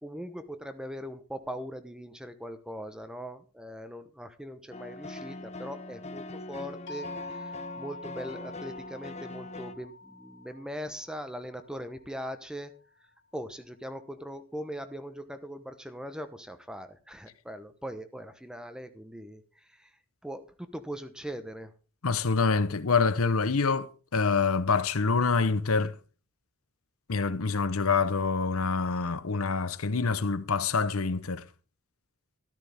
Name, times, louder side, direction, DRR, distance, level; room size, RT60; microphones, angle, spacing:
voice 1, 0.0-12.8 13.3-19.4 19.7-19.9 20.2-21.7, equal, 5° right, 1.0 m, -40 dB
sound 1, 4.7-9.7, left 2 dB, 30° left, 0.9 m, -42 dB
sound 2, 6.9-12.8, left 3 dB, 55° left, 1.9 m, -46 dB
voice 2, 22.0-25.9 27.1-31.4, left 4 dB, 85° left, 0.9 m, -26 dB
13.5 x 12.5 x 3.5 m
head